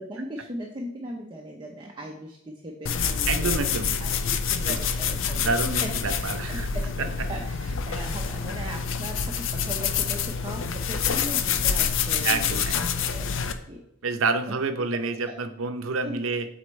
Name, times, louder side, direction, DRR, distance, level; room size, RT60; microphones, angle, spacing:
voice 1, 0.0-3.7 4.0-13.8 15.3-15.4 16.0-16.2, right 1 dB, 20° right, 0 dB, 0.7 m, -38 dB
sound 1, 2.9-13.5, left 6 dB, 65° left, 0.5 m, -27 dB
voice 2, 3.3-4.0 4.7-4.8 5.4-6.7 12.2-12.8 14.0-16.5, right 4 dB, 75° right, 8 dB, 0.6 m, -28 dB
7.8 x 4.3 x 3.1 m, 0.80 s
head